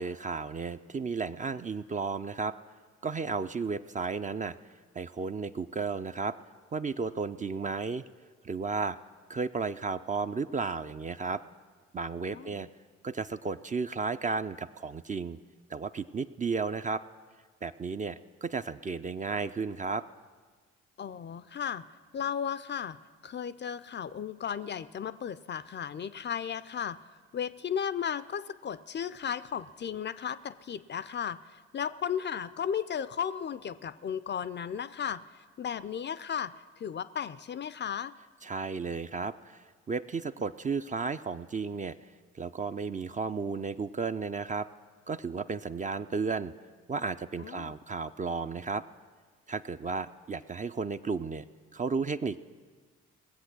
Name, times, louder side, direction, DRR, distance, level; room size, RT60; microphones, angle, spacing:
voice 1, 0.0-2.6 3.0-4.6 4.9-6.4 6.7-8.0 8.4-9.0 9.3-11.4 11.9-12.7 13.0-15.4 15.7-17.0 17.6-20.0 38.4-41.9 42.3-44.7 45.1-46.5 46.9-48.8 49.5-51.4 51.7-52.4, right 4 dB, 25° right, 10 dB, 0.4 m, -33 dB
voice 2, 12.3-12.6 21.0-21.8 22.1-23.0 23.2-27.0 27.3-35.2 35.6-36.5 36.8-38.2 47.4-47.7, left 8 dB, 35° left, 15 dB, 0.5 m, -35 dB
19.5 x 7.8 x 6.1 m, 1.5 s
hypercardioid pair, 45°, 32 cm